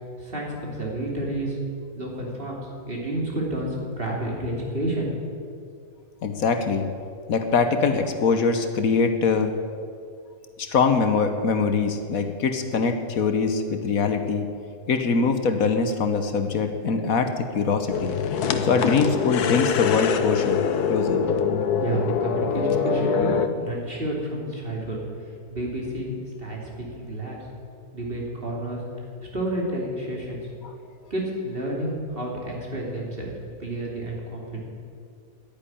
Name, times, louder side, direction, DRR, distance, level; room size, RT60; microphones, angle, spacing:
voice 1, 0.2-1.6 2.0-2.6 2.9-5.1 21.8-25.0 25.5-27.4 27.9-28.8 29.3-30.4 31.1-33.3 33.6-34.6, right 1 dB, 35° right, -2 dB, 3.1 m, -30 dB
voice 2, 6.2-6.9 7.3-9.5 10.6-14.4 14.9-18.1 18.6-20.6 20.9-21.2 30.6-30.7, left 5 dB, 65° left, 7 dB, 1.4 m, -23 dB
sound 1, 17.9-23.5, left 6 dB, 85° left, 1.4 m, -24 dB
11.0 x 10.5 x 10.0 m, 2.3 s
omnidirectional pair, 1.6 m